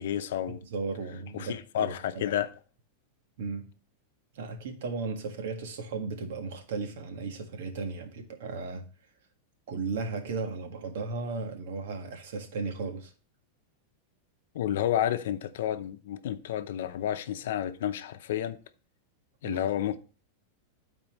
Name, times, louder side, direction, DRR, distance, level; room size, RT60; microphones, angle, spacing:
voice 1, 0.0-0.6 1.3-2.5 14.5-18.6 19.4-20.0, left 11 dB, 75° left, 0.7 m, -30 dB
voice 2, 0.7-2.2 3.4-3.7 4.3-8.9 9.7-13.1 19.4-19.6, right 4 dB, 70° right, 1.6 m, -35 dB
12.5 x 4.4 x 3.1 m
supercardioid pair, 155°, 0 cm